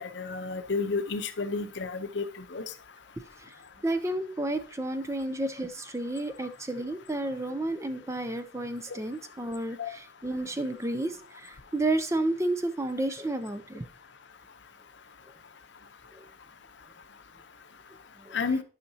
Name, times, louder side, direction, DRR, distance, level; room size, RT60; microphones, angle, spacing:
voice 1, 0.0-2.6 9.8-9.9 18.3-18.6, left 4 dB, 65° left, 10 dB, 0.7 m, -31 dB
voice 2, 3.8-13.9 16.1-16.2 18.2-18.4, right 1 dB, 15° right, 10 dB, 0.4 m, -31 dB
10.5 x 5.7 x 2.8 m, 0.38 s
head